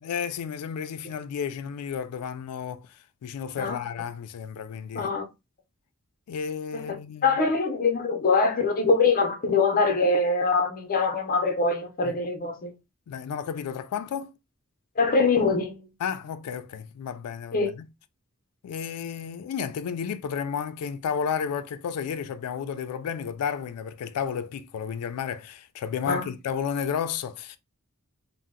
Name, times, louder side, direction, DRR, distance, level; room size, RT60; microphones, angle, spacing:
voice 1, 0.0-5.1 6.3-7.4 12.0-12.2 13.1-14.3 16.0-17.9 18.6-27.6, left 7 dB, 85° left, 0.3 m, -32 dB
voice 2, 4.9-5.2 6.7-7.0 7.2-12.7 15.0-15.9 17.5-17.7 26.1-26.3, left 4 dB, 40° left, 0.6 m, -23 dB
2.6 x 2.0 x 3.6 m
head